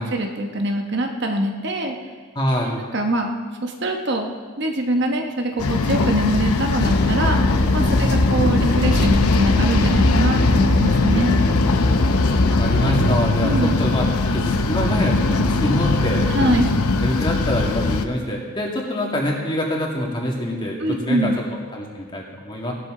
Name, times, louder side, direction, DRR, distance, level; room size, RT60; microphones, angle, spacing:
voice 1, 0.0-2.0 2.6-7.4 7.7-11.4 13.4-13.8 16.3-16.8 20.8-21.4, right 1 dB, 50° right, 3 dB, 1.1 m, -23 dB
voice 2, 2.4-2.8 8.0-8.6 11.7-11.9 12.6-16.6 17.0-21.3 21.7-22.7, left 1 dB, 20° left, -2 dB, 2.1 m, -25 dB
sound 1, 5.6-18.1, left 3 dB, 90° left, 0.8 m, -21 dB
sound 2, 6.8-13.1, left 1 dB, 45° left, 1.0 m, -21 dB
18.0 x 12.5 x 3.8 m, 1.5 s
head